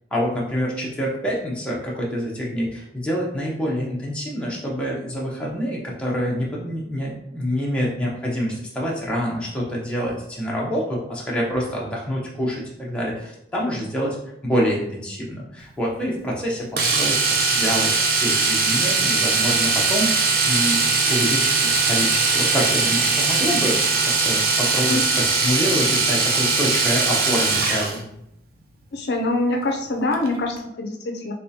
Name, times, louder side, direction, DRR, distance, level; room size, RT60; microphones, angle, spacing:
voice 1, 0.1-14.2 14.4-20.2 20.5-28.0, equal, 5° left, -5 dB, 0.7 m, -26 dB
Domestic sounds home sounds, 16.8-28.0 30.1-30.3 30.6-30.7, right 4 dB, 50° right, 0.5 m, -20 dB
voice 2, 28.9-31.3, left 2 dB, 65° left, 2 dB, 0.5 m, -24 dB
3.5 x 3.2 x 2.8 m, 0.79 s
head